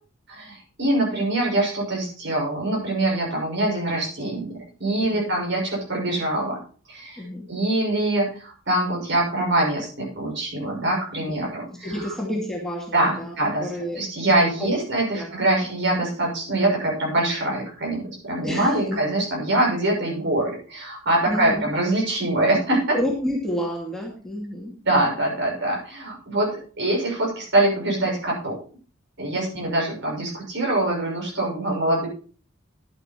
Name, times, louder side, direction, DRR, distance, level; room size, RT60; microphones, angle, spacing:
voice 1, 0.3-6.6 6.9-12.1 12.9-13.7 14.0-23.0 24.9-28.6 29.2-32.1, right 1 dB, 55° right, -2 dB, 6.3 m, -24 dB
voice 2, 5.0-5.3 7.2-7.5 11.4-11.5 11.8-13.3 13.6-14.0 14.6-14.7 15.1-15.3 15.6-15.7 18.4-19.0 21.3-21.7 22.9-24.7 29.4-29.7, equal, ahead, -3 dB, 2.4 m, -29 dB
11.5 x 8.9 x 4.5 m, 0.40 s
head